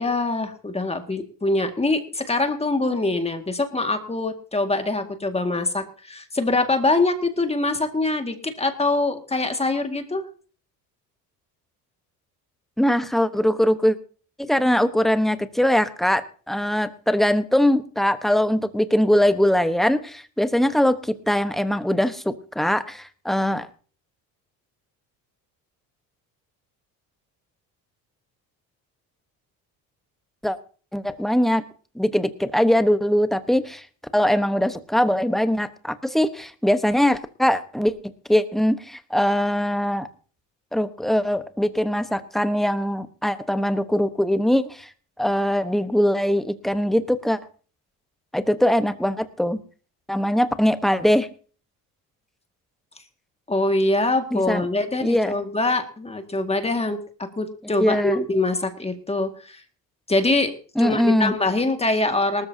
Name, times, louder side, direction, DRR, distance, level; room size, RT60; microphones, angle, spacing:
voice 1, 0.0-10.3 53.5-59.6 60.1-60.5 60.8-62.5, left 2 dB, 15° left, 6 dB, 1.9 m, -24 dB
voice 2, 12.8-14.0 14.4-23.7 30.4-30.6 30.9-31.6 31.9-33.9 34.1-37.9 38.3-40.1 40.7-44.9 45.2-47.4 48.3-49.6 50.1-51.3 54.3-54.6 55.0-55.3 57.7-58.2 60.8-61.3, equal, ahead, 11 dB, 1.1 m, -21 dB
19.0 x 13.5 x 2.8 m, 0.40 s
supercardioid pair, 90°, 37 cm